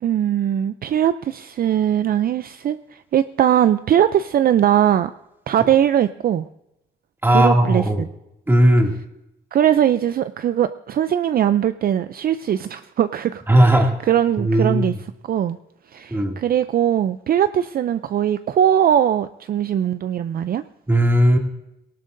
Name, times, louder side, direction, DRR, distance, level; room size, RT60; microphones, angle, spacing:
voice 1, 0.0-5.1 5.5-6.5 7.3-8.1 9.5-13.8 14.1-14.9 15.2-15.6 15.9-20.6, right 10 dB, 50° right, 12 dB, 0.4 m, -20 dB
voice 2, 7.2-8.0 8.5-8.9 13.5-13.9 14.4-14.8 16.1-16.4 20.9-21.4, right 1 dB, 10° right, 1 dB, 2.4 m, -16 dB
18.5 x 18.0 x 2.6 m, 0.88 s
cardioid pair, 90°, 20 cm